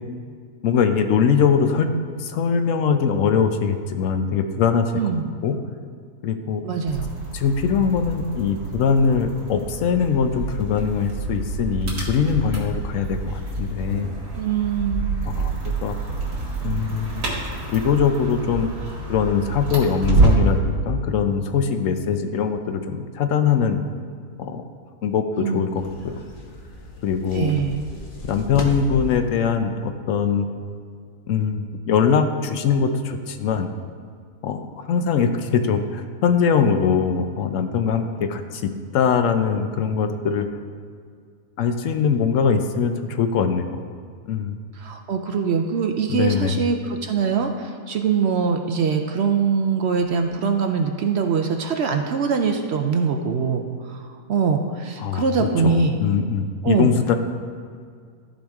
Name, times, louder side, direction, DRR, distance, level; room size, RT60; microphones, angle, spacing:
voice 1, 0.6-1.9 2.2-4.9 5.4-5.6 6.2-6.6 7.3-14.2 15.3-16.0 16.6-17.3 17.7-18.7 19.1-23.8 24.4-24.6 25.0-26.2 27.0-27.6 28.2-30.5 31.3-33.7 34.4-40.5 41.6-43.8 44.3-44.6 46.1-46.6 55.0-57.1, left 6 dB, 65° left, 7 dB, 0.9 m, -22 dB
voice 2, 5.0-5.3 6.6-7.1 14.3-15.1 25.3-25.7 27.3-27.8 35.0-35.2 44.8-56.0 56.6-56.9, right 6 dB, 65° right, 5 dB, 0.6 m, -23 dB
sound 1, 6.9-20.6, right 3 dB, 85° right, 2.6 m, -27 dB
sound 2, 25.8-29.1, left 2 dB, 40° left, 1.0 m, -34 dB
14.0 x 5.0 x 3.5 m, 2.1 s
omnidirectional pair, 1.6 m